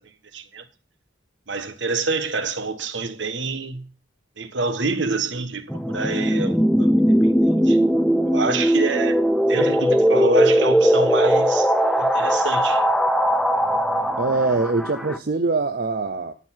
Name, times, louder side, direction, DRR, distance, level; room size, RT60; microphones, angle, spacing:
voice 1, 0.3-0.6 1.5-3.9 4.4-6.9 7.2-7.8 8.3-9.2 9.5-11.7 12.0-12.8, right 3 dB, 65° right, 1.2 m, -27 dB
sound 1, 5.7-15.2, equal, ahead, 0.5 m, -19 dB
voice 2, 14.2-16.3, right 3 dB, 50° right, 0.6 m, -23 dB
12.5 x 4.6 x 7.3 m
head